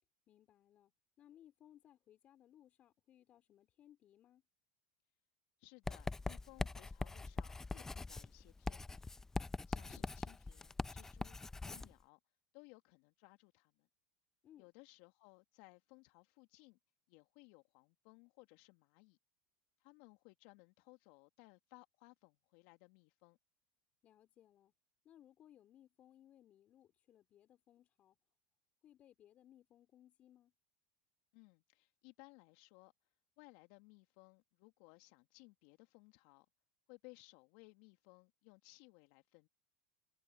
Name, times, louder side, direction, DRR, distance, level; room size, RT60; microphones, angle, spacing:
voice 1, 0.3-0.9 1.2-4.4 14.4-14.7 24.0-24.7 25.0-28.2 28.8-30.5, left 11 dB, 45° left, 4.4 m, -64 dB
voice 2, 5.6-9.1 9.7-11.4 11.6-12.2 12.5-13.9 14.6-16.8 17.1-19.2 19.8-23.4 31.3-32.9 33.4-36.5 36.9-39.5, left 27 dB, 65° left, 1.9 m, -62 dB
Writing, 5.9-11.9, left 3 dB, 15° left, 0.6 m, -42 dB
hypercardioid pair, 85°, 3 cm